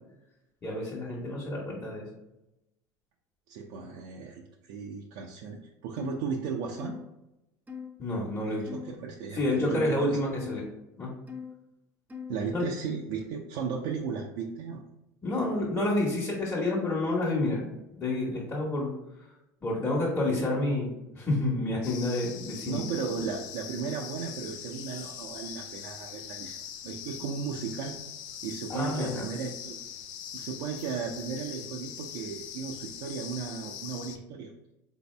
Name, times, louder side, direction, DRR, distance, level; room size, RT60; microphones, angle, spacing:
voice 1, 0.6-2.0 8.0-8.6 9.3-10.6 11.0-11.1 12.5-12.6 15.2-17.6 18.0-18.9 19.6-22.8 28.7-29.2, left 2 dB, 25° left, -6 dB, 1.2 m, -29 dB
voice 2, 3.5-7.0 8.4-10.2 12.3-14.8 22.6-26.6 26.8-27.9 28.4-29.8 30.3-34.5, right 6 dB, 70° right, -1 dB, 0.5 m, -35 dB
sound 1, 6.0-6.2 6.8-7.1 7.7-7.9 8.7-9.0 9.6-9.8 10.4-10.6 11.3-11.5 12.1-12.4, left 7 dB, 15° right, 0.7 m, -40 dB
sound 2, 21.8-34.2, left 9 dB, 70° left, 0.5 m, -42 dB
3.9 x 2.7 x 3.3 m, 0.91 s
hypercardioid pair, 80°, 10 cm